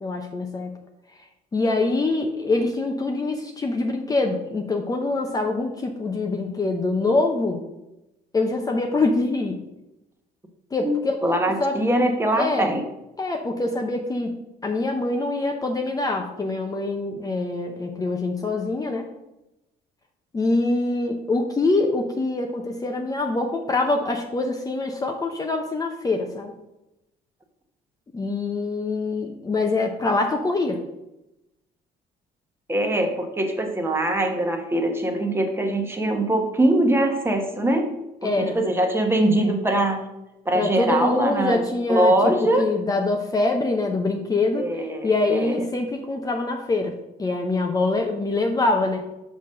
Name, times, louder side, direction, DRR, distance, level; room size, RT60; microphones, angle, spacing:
voice 1, 0.0-0.7 1.2-1.3 1.5-7.6 8.3-9.6 10.7-11.2 11.6-11.8 12.3-12.7 13.2-14.3 14.6-19.1 20.3-26.5 28.1-30.8 38.2-38.6 40.5-49.1, left 2 dB, 20° left, 3 dB, 0.7 m, -24 dB
voice 2, 10.8-12.8 32.7-37.9 38.2-40.0 40.4-41.6 41.9-42.7 44.6-45.6, right 1 dB, 15° right, 4 dB, 1.1 m, -22 dB
5.9 x 4.1 x 6.3 m, 0.93 s
cardioid pair, 110°, 17 cm